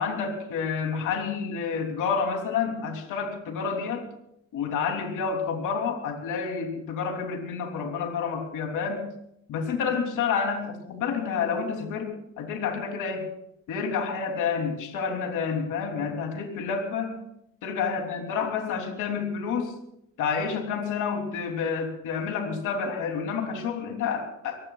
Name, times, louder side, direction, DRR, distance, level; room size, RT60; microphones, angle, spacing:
voice 1, 0.0-4.0 4.5-9.1 9.5-13.3 13.7-17.2 17.6-19.7 20.2-24.7, left 6 dB, 85° left, 3 dB, 3.3 m, -29 dB
25.5 x 18.5 x 2.4 m, 0.74 s
cardioid pair, 90°, 30 cm